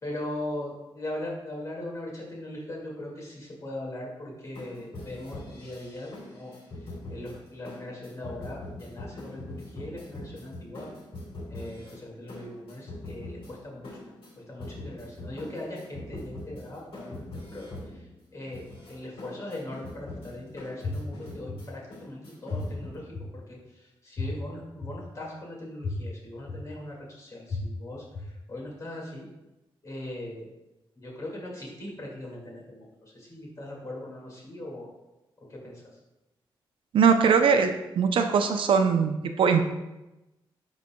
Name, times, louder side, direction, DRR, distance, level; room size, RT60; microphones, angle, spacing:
voice 1, 0.0-6.5 7.1-10.9 11.5-13.9 14.5-29.3 29.8-30.5 31.0-34.9 35.5-35.8, left 1 dB, 35° left, -3 dB, 2.1 m, -40 dB
sound 1, 4.5-22.9, left 2 dB, 75° left, 2.3 m, -43 dB
sound 2, 20.8-20.9 21.5-21.6 22.5-22.6 23.1-23.2 24.2-24.3 24.8-24.9 25.8-25.9 26.5-26.6 27.5-27.6 28.1-28.2, left 5 dB, 60° left, 1.1 m, -31 dB
voice 2, 36.9-37.7 38.0-39.7, right 6 dB, 75° right, 6 dB, 0.6 m, -21 dB
11.5 x 4.1 x 2.2 m, 0.98 s
wide cardioid pair, 120°, 9 cm